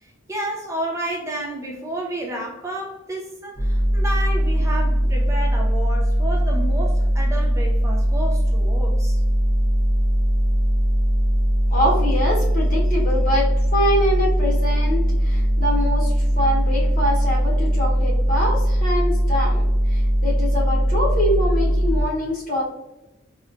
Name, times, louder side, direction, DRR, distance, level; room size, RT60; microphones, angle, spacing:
voice 1, 0.0-9.2, right 1 dB, 15° right, 0 dB, 0.4 m, -31 dB
sound 1, 3.6-22.0, equal, 25° left, 0.7 m, -20 dB
voice 2, 11.7-22.6, equal, 45° left, -4 dB, 1.0 m, -24 dB
4.1 x 2.2 x 2.5 m, 0.98 s
head